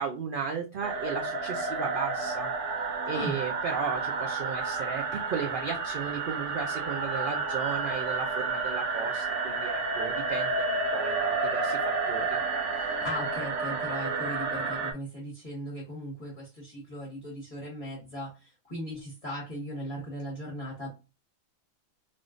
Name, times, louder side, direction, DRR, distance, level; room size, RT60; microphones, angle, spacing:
voice 1, 0.0-2.5 3.1-12.4, right 6 dB, 85° right, 4 dB, 0.4 m, -35 dB
sound 1, 0.8-14.9, right 4 dB, 65° right, 0.9 m, -30 dB
voice 2, 12.7-20.9, equal, 25° left, -5 dB, 1.2 m, -38 dB
3.5 x 2.5 x 2.4 m, 0.29 s
omnidirectional pair, 1.5 m